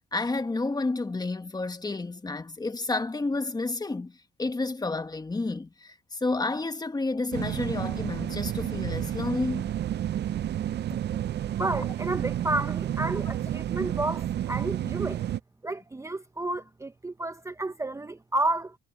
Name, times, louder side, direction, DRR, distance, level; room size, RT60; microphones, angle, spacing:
voice 1, 0.1-9.7, left 3 dB, 20° left, 1.5 m, -30 dB
sound 1, 7.3-15.4, right 11 dB, 60° right, 0.6 m, -30 dB
voice 2, 11.6-15.2 15.6-18.8, right 2 dB, 15° right, 0.8 m, -31 dB
cardioid pair, 90°, 20 cm